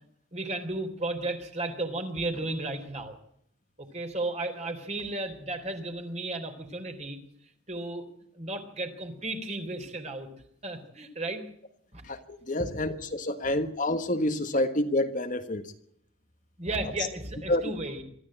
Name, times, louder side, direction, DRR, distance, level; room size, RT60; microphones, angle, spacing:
voice 1, 0.3-3.1 3.9-7.2 7.7-8.0 8.3-10.3 10.6-11.4 11.9-12.0 13.4-13.6 16.6-18.0, right 2 dB, 35° right, 6 dB, 3.7 m, -34 dB
voice 2, 12.0-15.7 17.5-17.6, left 1 dB, 40° left, 7 dB, 1.5 m, -28 dB
23.5 x 14.0 x 8.8 m, 0.72 s
head